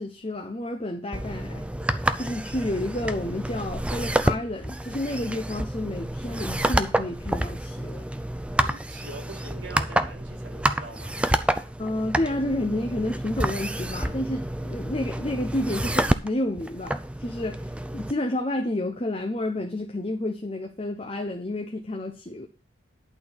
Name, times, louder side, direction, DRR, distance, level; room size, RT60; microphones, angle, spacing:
voice 1, 0.0-1.7 2.2-8.0 11.8-17.6 17.9-22.5, left 1 dB, 30° left, 0.9 m, -30 dB
sound 1, 1.1-18.1, right 1 dB, 5° right, 0.5 m, -28 dB
voice 2, 8.6-11.2, right 2 dB, 75° right, 3.1 m, -43 dB
11.5 x 4.2 x 7.2 m
head